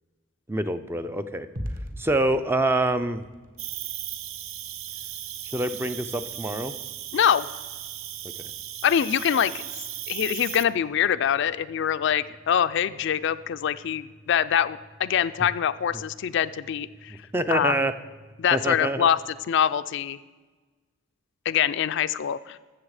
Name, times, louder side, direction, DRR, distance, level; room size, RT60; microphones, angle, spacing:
voice 1, 0.5-1.5 2.0-3.2 5.4-6.7 8.4-8.5 17.3-17.9 18.5-19.1, right 2 dB, 10° right, 10 dB, 0.4 m, -26 dB
sound 1, 1.6-19.8, equal, 45° right, 1.2 m, -47 dB
Cricket, 3.6-10.6, right 11 dB, 80° right, 0.6 m, -36 dB
voice 2, 7.1-7.5 8.8-9.5 10.1-17.2 17.5-17.8 18.4-19.2 19.5-20.2 21.5-22.6, left 9 dB, 60° left, 13 dB, 0.3 m, -24 dB
13.5 x 7.4 x 4.8 m, 1.3 s
head